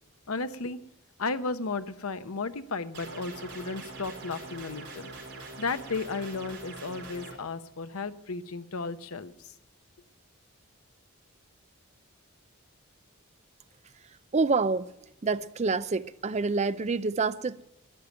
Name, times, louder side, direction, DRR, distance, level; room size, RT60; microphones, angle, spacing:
voice 1, 0.3-0.8 1.2-5.1 5.6-9.3, left 4 dB, 85° left, 0.9 m, -34 dB
sound 1, 2.9-7.3, right 3 dB, 55° right, 4.6 m, -43 dB
voice 2, 14.3-14.9 15.2-17.6, right 4 dB, 30° right, 0.5 m, -27 dB
12.5 x 10.5 x 8.7 m
head